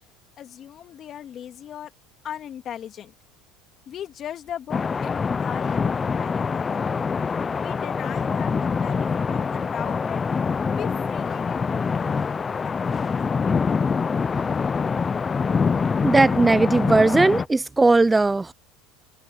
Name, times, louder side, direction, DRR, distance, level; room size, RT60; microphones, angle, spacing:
voice 1, 0.4-1.9 2.2-3.1 3.9-6.9 7.6-10.2 10.7-11.7 12.5-13.0 13.4-13.8, left 10 dB, 45° left, 2.3 m, -38 dB
sound 1, 4.7-17.5, left 5 dB, 25° left, 0.6 m, -25 dB
voice 2, 16.0-18.5, right 3 dB, 15° right, 0.6 m, -18 dB
supercardioid pair, 95°, 0 cm